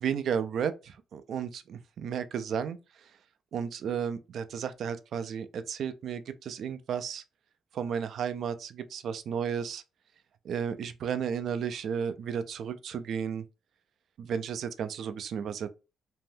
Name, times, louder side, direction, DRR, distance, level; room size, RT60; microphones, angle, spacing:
voice 1, 0.0-3.2 3.5-7.2 7.7-9.8 10.4-13.5 14.2-15.7, right 7 dB, 65° right, 0.3 m, -33 dB
2.6 x 2.2 x 3.2 m
cardioid pair, 90°, 0 cm